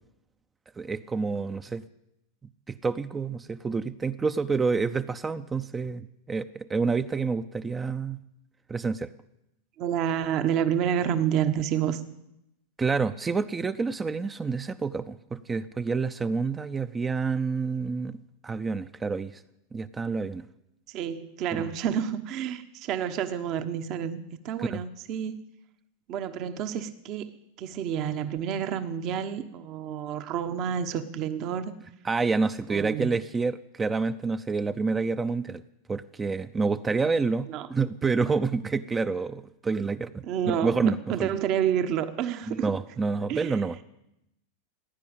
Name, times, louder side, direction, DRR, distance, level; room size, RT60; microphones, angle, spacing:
voice 1, 0.8-1.8 2.7-8.2 8.7-9.1 12.8-18.2 18.4-19.3 19.7-20.5 24.6-24.8 32.0-35.6 35.9-41.3 42.5-43.8, right 4 dB, 15° right, 10 dB, 0.6 m, -28 dB
voice 2, 9.8-12.0 20.9-25.4 26.1-27.3 27.6-31.7 32.7-33.1 37.5-37.7 40.2-42.7 43.3-43.6, right 9 dB, 45° right, 9 dB, 1.1 m, -29 dB
16.5 x 9.9 x 8.8 m, 0.84 s
hypercardioid pair, 110°, 0 cm